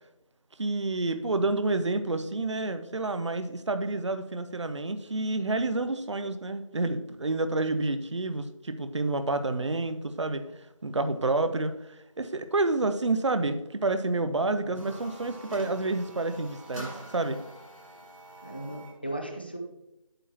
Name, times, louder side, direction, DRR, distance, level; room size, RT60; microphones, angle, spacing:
voice 1, 0.6-17.4, right 2 dB, 60° right, 10 dB, 0.6 m, -29 dB
sound 1, 14.6-19.0, right 1 dB, ahead, 1.1 m, -45 dB
voice 2, 18.4-19.6, right 1 dB, 20° left, 3 dB, 0.6 m, -37 dB
8.8 x 8.6 x 2.8 m, 0.91 s
figure-of-eight pair, 170°, 17 cm